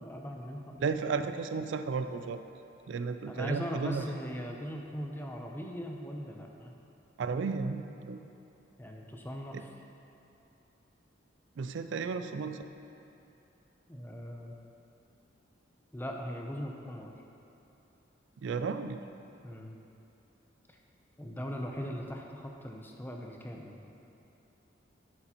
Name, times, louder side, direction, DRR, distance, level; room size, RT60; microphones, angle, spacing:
voice 1, 0.0-1.0 3.3-6.7 8.8-9.7 13.9-14.6 15.9-17.1 19.4-19.8 21.2-23.8, equal, 10° left, 1 dB, 0.6 m, -40 dB
voice 2, 0.8-2.4 2.9-4.1 7.2-8.2 9.5-9.6 11.6-12.6 18.4-19.0, right 5 dB, 75° right, 9 dB, 0.3 m, -33 dB
11.0 x 6.7 x 2.9 m, 2.9 s
head